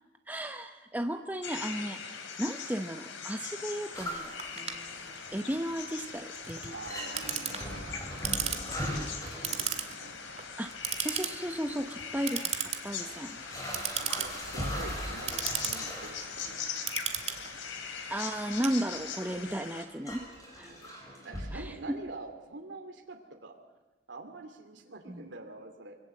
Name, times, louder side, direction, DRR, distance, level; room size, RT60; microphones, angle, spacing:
voice 1, 0.3-2.0 2.4-4.3 4.6-6.7 10.6-10.7 11.0-12.6 12.8-13.4 18.1-20.2 20.6-20.7 21.5-22.0 25.1-25.3, equal, 10° right, 6 dB, 0.9 m, -34 dB
sound 1, 1.4-19.9, left 6 dB, 90° left, 3.2 m, -41 dB
sound 2, 3.9-5.4 5.7-6.1 6.5-6.6 6.9-10.3 11.3-11.4 12.2-12.3 12.9-16.7 17.1-17.4 18.2-18.3 19.5-19.6 20.1-21.5, equal, 20° left, 5.7 m, -40 dB
Clock, 4.4-19.3, right 9 dB, 35° right, 2.0 m, -37 dB
voice 2, 6.7-10.4 13.9-16.6 20.7-20.9 21.2-23.6 24.1-26.0, right 2 dB, 75° right, 3 dB, 2.6 m, -46 dB
25.5 x 23.5 x 7.8 m, 1.1 s
head